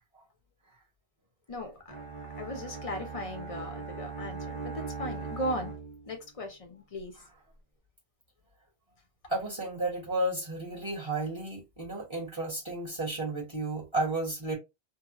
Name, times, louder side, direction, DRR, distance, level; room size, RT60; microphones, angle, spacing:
Bowed string instrument, 1.9-6.3, right 5 dB, 50° right, 1.3 m, -40 dB
voice 1, 2.4-5.7 6.1-7.1, equal, 35° left, 0.8 m, -37 dB
voice 2, 9.3-14.5, right 2 dB, 25° right, 1.4 m, -32 dB
2.9 x 2.2 x 2.8 m
omnidirectional pair, 1.1 m